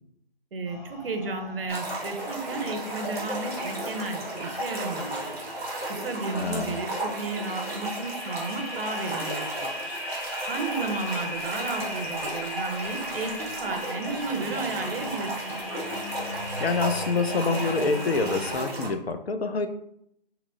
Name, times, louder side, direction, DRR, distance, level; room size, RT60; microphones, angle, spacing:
voice 1, 0.5-5.3 5.9-10.0 10.5-15.6, right 3 dB, 65° right, 5 dB, 0.7 m, -33 dB
sound 1, 0.7-18.5, left 1 dB, 30° left, 0.8 m, -39 dB
sound 2, 1.7-18.9, right 1 dB, ahead, 0.6 m, -34 dB
voice 2, 6.3-6.8 16.6-19.7, left 4 dB, 80° left, 8 dB, 0.5 m, -26 dB
2.9 x 2.0 x 3.6 m, 0.76 s
figure-of-eight pair, 160°, 30 cm